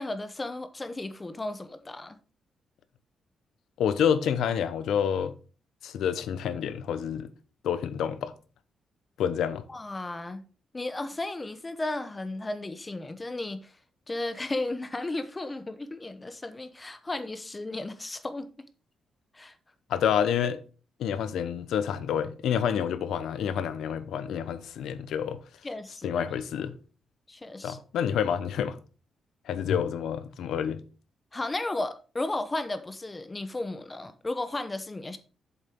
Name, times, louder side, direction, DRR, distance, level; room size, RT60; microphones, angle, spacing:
voice 1, 0.0-2.2 9.7-10.4 10.7-13.7 14.1-18.5 19.3-19.5 25.6-26.2 27.3-27.8 31.3-35.2, left 2 dB, 20° left, 0.8 m, -34 dB
voice 2, 3.8-5.3 5.8-7.3 7.6-8.3 9.2-9.6 19.9-20.6 21.0-25.4 26.0-26.7 27.6-28.8 29.5-30.8, left 8 dB, 85° left, 0.9 m, -28 dB
8.3 x 7.2 x 3.6 m
cardioid pair, 125°, 0 cm